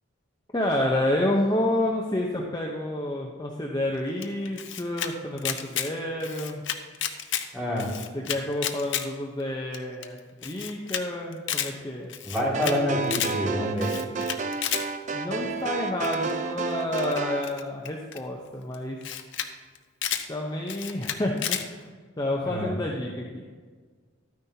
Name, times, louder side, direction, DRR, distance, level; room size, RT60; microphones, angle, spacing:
voice 1, 0.5-6.6 8.1-12.1 15.1-19.0 20.3-21.8 22.2-23.4, left 1 dB, 20° left, -1 dB, 0.7 m, -29 dB
Camera, 4.2-5.1 5.4-5.9 6.2-7.4 7.8-9.0 9.4-9.5 9.7-9.8 10.0-10.1 10.4-11.0 11.3-11.7 12.1-12.8 13.0-13.3 13.8-14.8 16.0-16.3 16.9-18.2 18.7-18.8 19.0-19.5 19.7-20.2 20.7-21.6, left 10 dB, 60° left, 0.6 m, -31 dB
voice 2, 7.5-7.9 12.2-13.9 22.4-22.7, equal, 5° right, -5 dB, 2.2 m, -27 dB
sound 1, 12.5-17.5, right 4 dB, 35° right, 0.5 m, -31 dB
12.0 x 9.5 x 2.8 m, 1.5 s
head